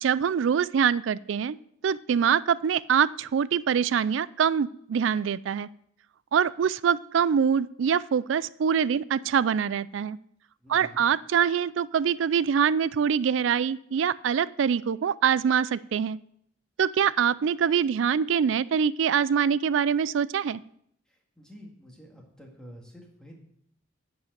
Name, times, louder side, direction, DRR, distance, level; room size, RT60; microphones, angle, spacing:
voice 1, 0.0-1.6 1.8-5.7 6.3-10.2 10.7-16.2 16.8-20.6, right 7 dB, 70° right, 19 dB, 0.4 m, -24 dB
voice 2, 10.6-11.1 21.1-23.4, equal, 5° left, -1 dB, 1.9 m, -48 dB
11.0 x 4.9 x 7.9 m, 0.69 s
head